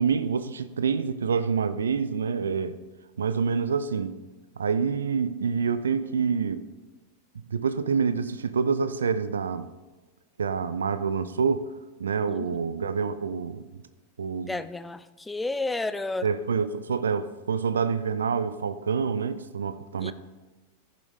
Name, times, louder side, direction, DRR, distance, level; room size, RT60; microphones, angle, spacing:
voice 1, 0.0-2.8 3.2-4.2 4.6-6.7 7.5-9.7 10.4-11.7 12.0-13.6 14.2-14.6 16.2-20.1, right 6 dB, 70° right, 0.5 m, -27 dB
voice 2, 14.5-16.3 20.0-20.1, left 2 dB, 10° left, 0.4 m, -31 dB
14.5 x 7.5 x 3.5 m
figure-of-eight pair, 90°, 0 cm